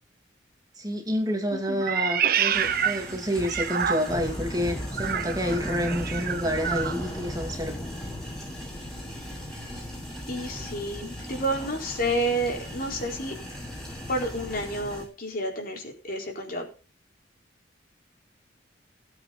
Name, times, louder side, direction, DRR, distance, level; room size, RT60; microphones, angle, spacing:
voice 1, 0.8-7.9, equal, 20° right, 2 dB, 2.6 m, -29 dB
voice 2, 1.5-1.8 10.3-13.3 14.1-16.7, right 1 dB, 50° left, 1 dB, 4.3 m, -30 dB
Meow, 1.8-4.4 4.9-7.0, right 8 dB, 55° right, 0.8 m, -28 dB
sound 1, 2.5-15.0, equal, 5° left, 7.9 m, -42 dB
sound 2, 4.1-15.1, left 1 dB, 20° left, 1.1 m, -37 dB
18.0 x 8.4 x 4.0 m, 0.34 s
head